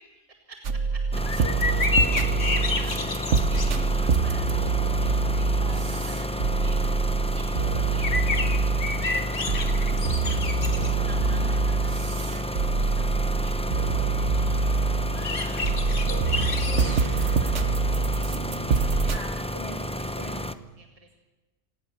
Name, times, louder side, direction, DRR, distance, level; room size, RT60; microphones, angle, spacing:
voice 1, 0.0-7.0 7.3-10.5 10.7-19.5 19.9-20.5 20.8-21.1, right 2 dB, 30° right, 3 dB, 2.0 m, -49 dB
sound 1, 0.6-19.2, right 4 dB, 70° right, 1.5 m, -25 dB
sound 2, 1.1-20.5, left 1 dB, 5° left, 0.7 m, -32 dB
sound 3, 1.2-19.2, left 3 dB, 70° left, 2.2 m, -33 dB
voice 2, 11.2-11.5 19.1-20.5, right 1 dB, 50° right, 2 dB, 5.7 m, -41 dB
26.5 x 18.0 x 7.0 m, 1.1 s
omnidirectional pair, 1.3 m